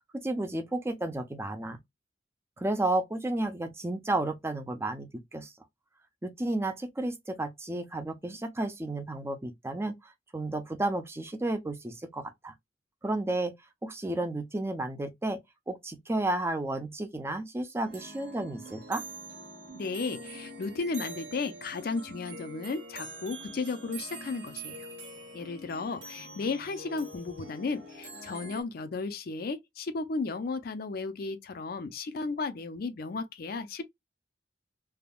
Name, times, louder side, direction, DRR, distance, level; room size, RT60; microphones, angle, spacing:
voice 1, 0.1-1.8 2.6-5.5 6.2-12.5 13.0-13.5 13.8-15.4 15.7-19.0, right 2 dB, 15° right, 0.5 m, -32 dB
sound 1, 17.8-28.6, right 2 dB, 75° right, 1.1 m, -44 dB
voice 2, 19.7-24.9 25.3-33.8, left 4 dB, 55° left, 0.5 m, -34 dB
3.4 x 2.2 x 2.2 m
head